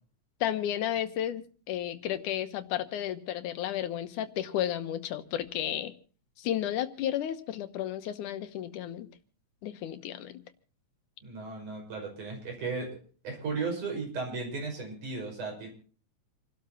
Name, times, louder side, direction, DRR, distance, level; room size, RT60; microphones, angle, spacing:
voice 1, 0.4-1.4 1.7-5.9 6.4-9.1 9.6-10.4, left 11 dB, 85° left, 10 dB, 2.5 m, -32 dB
voice 2, 11.2-15.7, right 4 dB, 80° right, 0 dB, 7.1 m, -35 dB
28.5 x 12.5 x 2.9 m, 0.39 s
omnidirectional pair, 3.5 m